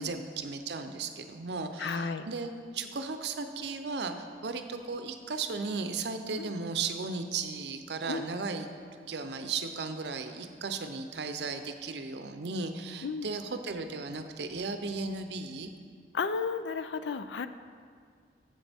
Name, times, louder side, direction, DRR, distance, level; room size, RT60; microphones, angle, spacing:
voice 1, 0.0-8.7 9.1-15.7, right 4 dB, 70° right, 8 dB, 0.6 m, -35 dB
voice 2, 1.8-2.3 6.4-6.5 8.1-8.3 13.0-13.3 16.1-17.5, left 5 dB, 80° left, 11 dB, 0.4 m, -33 dB
11.5 x 7.6 x 3.5 m, 2.1 s
head